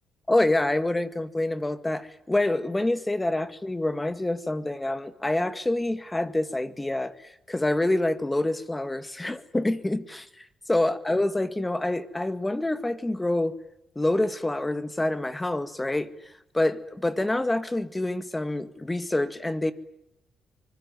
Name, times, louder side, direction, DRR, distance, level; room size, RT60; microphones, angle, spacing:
voice 1, 0.3-13.5 14.0-16.1 16.5-19.7, left 1 dB, 15° left, 12 dB, 1.8 m, -27 dB
24.5 x 21.5 x 9.4 m, 0.84 s
cardioid pair, 90°, 0 cm